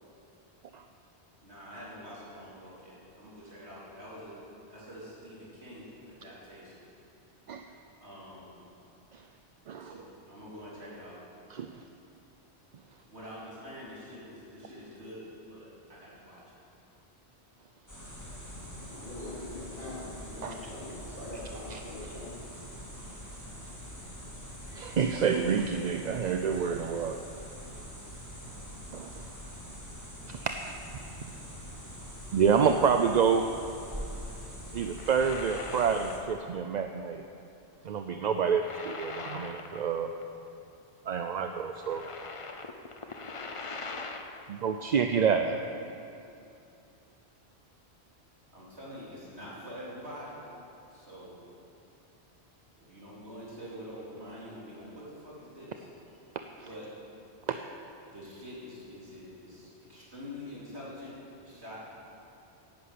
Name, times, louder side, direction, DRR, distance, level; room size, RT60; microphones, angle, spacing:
voice 1, 1.4-4.4 4.7-6.9 8.0-8.6 9.8-11.2 13.0-16.4 48.5-50.4 50.9-51.3 52.9-55.9 56.5-56.9 58.1-61.9, equal, 75° right, -7 dB, 4.2 m, -46 dB
sound 1, 17.9-36.2, equal, 15° left, 2.0 m, -44 dB
voice 2, 18.8-22.4, left 1 dB, 50° left, -7 dB, 3.7 m, -43 dB
voice 3, 24.8-27.2 29.2-29.3 32.3-33.4 34.7-37.2 37.9-40.1 41.1-42.0 44.6-45.6, right 6 dB, 50° right, 6 dB, 0.6 m, -27 dB
sound 2, 34.8-36.5 36.8-37.0 38.3-40.2 40.5-40.6 41.5-44.5, left 3 dB, 35° left, 0.7 m, -42 dB
10.5 x 9.9 x 8.6 m, 2.7 s
omnidirectional pair, 1.1 m